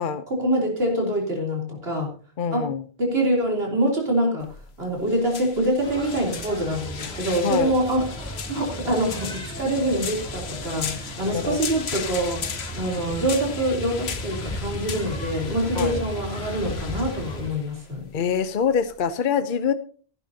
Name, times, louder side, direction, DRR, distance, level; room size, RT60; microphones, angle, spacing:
voice 1, 0.3-2.2 2.5-2.7 3.0-4.5 4.8-18.1, right 1 dB, 75° right, -1 dB, 3.6 m, -25 dB
voice 2, 2.4-2.8 7.4-7.7 11.3-11.8 15.8-16.0 18.1-19.7, left 7 dB, 60° left, 11 dB, 0.8 m, -25 dB
sound 1, 4.4-19.1, left 7 dB, 85° left, 1.2 m, -37 dB
sound 2, 5.8-17.5, equal, 5° left, 3.2 m, -35 dB
15.5 x 11.0 x 2.8 m, 0.40 s
omnidirectional pair, 1.0 m